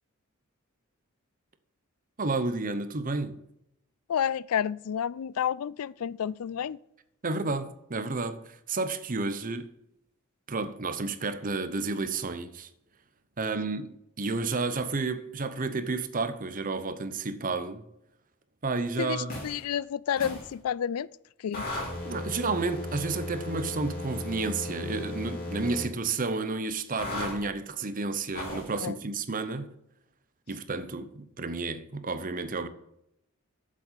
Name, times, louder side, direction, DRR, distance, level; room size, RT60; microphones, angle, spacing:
voice 1, 2.2-3.4 7.2-9.7 10.5-12.7 13.4-17.8 18.6-19.4 22.0-29.7 30.5-32.7, right 3 dB, 40° right, 0.8 m, -31 dB
voice 2, 4.1-6.8 19.0-21.1 21.4-21.7 28.8-29.0, left 8 dB, 90° left, 0.4 m, -30 dB
sound 1, 19.3-19.6 20.2-20.5 21.5-25.9 27.0-27.4 28.3-28.7, left 1 dB, 45° left, 3.3 m, -36 dB
7.7 x 7.5 x 7.4 m
head